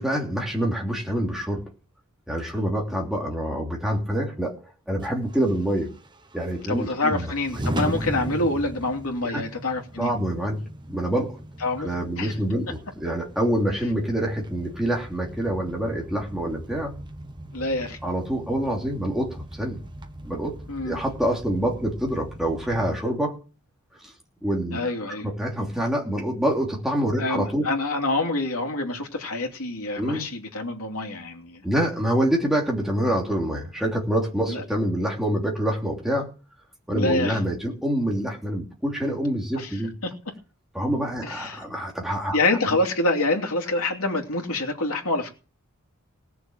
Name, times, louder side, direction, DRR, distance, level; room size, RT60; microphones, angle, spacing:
voice 1, 0.0-1.6 2.3-4.6 4.9-5.9 6.3-7.6 9.2-9.4 10.0-11.4 11.8-16.9 18.0-19.8 20.2-20.5 20.8-23.4 24.4-27.7 30.0-30.3 31.6-36.3 36.9-39.9 40.7-42.4, right 1 dB, ahead, 3.1 m, -26 dB
sound 1, 5.0-22.9, right 1 dB, 20° right, 1.2 m, -38 dB
voice 2, 6.7-10.1 11.6-11.9 12.2-12.3 17.5-18.0 20.7-21.0 24.7-25.3 27.2-31.6 34.5-34.6 36.9-37.4 39.6-39.8 40.0-40.1 41.2-41.6 42.3-45.3, left 2 dB, 85° left, 2.9 m, -26 dB
18.0 x 6.9 x 7.4 m
head